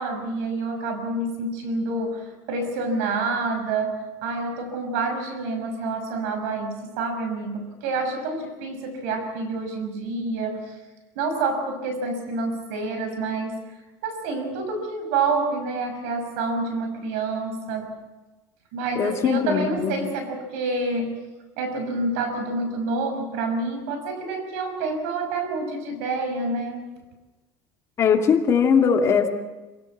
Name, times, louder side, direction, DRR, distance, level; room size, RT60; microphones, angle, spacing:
voice 1, 0.0-10.8 11.1-13.6 14.0-17.9 18.7-21.2 21.6-27.0, right 3 dB, 90° right, 7 dB, 5.9 m, -28 dB
voice 2, 19.0-19.9 28.0-29.3, left 6 dB, 35° left, 3 dB, 2.7 m, -20 dB
26.5 x 17.0 x 7.5 m, 1.2 s
cardioid pair, 130°, 8 cm